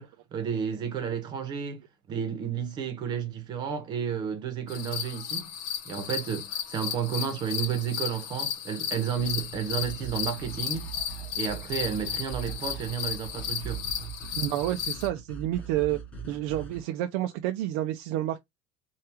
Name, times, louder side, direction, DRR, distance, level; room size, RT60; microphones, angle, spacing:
voice 1, 0.0-1.8 2.1-5.5 5.8-10.9 11.4-13.9, right 8 dB, 30° right, 0.8 m, -32 dB
sound 1, 4.7-15.1, left 8 dB, 70° left, 0.8 m, -34 dB
sound 2, 9.2-16.8, right 5 dB, 10° left, 1.0 m, -41 dB
voice 2, 14.4-16.0 16.3-18.4, right 14 dB, 70° right, 0.4 m, -29 dB
3.4 x 2.3 x 2.8 m
cardioid pair, 165°, 13 cm